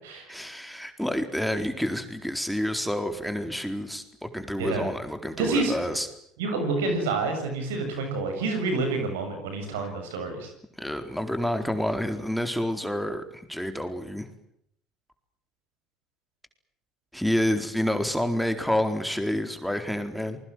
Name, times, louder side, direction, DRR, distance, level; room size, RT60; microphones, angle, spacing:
voice 1, 0.3-6.1 10.8-14.3 17.1-20.4, left 1 dB, ahead, 6 dB, 4.2 m, -28 dB
voice 2, 4.6-4.9 5.4-6.0 6.4-10.5, right 3 dB, 80° right, 6 dB, 7.4 m, -28 dB
27.5 x 21.5 x 7.7 m, 0.72 s
hypercardioid pair, 65°, 0 cm